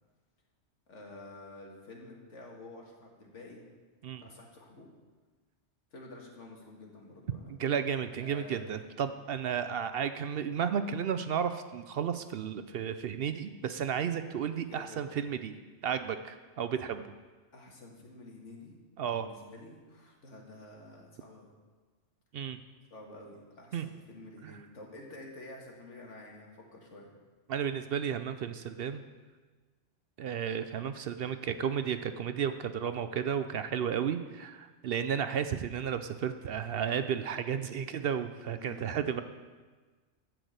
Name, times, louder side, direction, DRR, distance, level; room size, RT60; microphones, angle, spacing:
voice 1, 0.9-3.6 4.2-4.9 5.9-7.6 8.2-8.7 14.7-15.2 17.5-18.7 19.1-21.5 22.9-27.1 38.5-39.1, left 2 dB, 85° left, -1 dB, 2.0 m, -49 dB
voice 2, 7.5-15.5 15.8-17.1 19.0-19.3 22.3-22.6 23.7-23.8 24.4-24.5 27.5-29.0 30.2-39.2, right 8 dB, 65° right, 10 dB, 0.7 m, -33 dB
12.0 x 4.7 x 7.9 m, 1.4 s
omnidirectional pair, 1.2 m